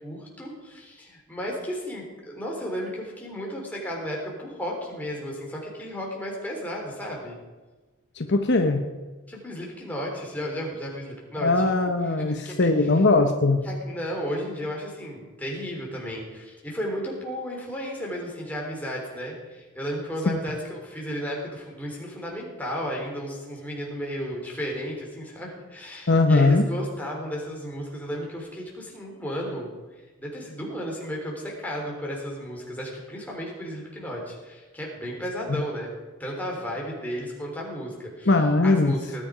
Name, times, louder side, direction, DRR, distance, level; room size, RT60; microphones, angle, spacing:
voice 1, 0.0-7.4 9.3-11.6 12.3-12.6 13.6-29.7 30.2-35.9 36.2-38.3 38.6-39.2, equal, 5° left, -2 dB, 3.7 m, -33 dB
voice 2, 8.2-8.8 11.4-13.6 20.3-20.4 26.1-26.6 38.2-38.9, left 3 dB, 50° left, 5 dB, 0.9 m, -20 dB
19.5 x 10.0 x 5.0 m, 1.3 s
head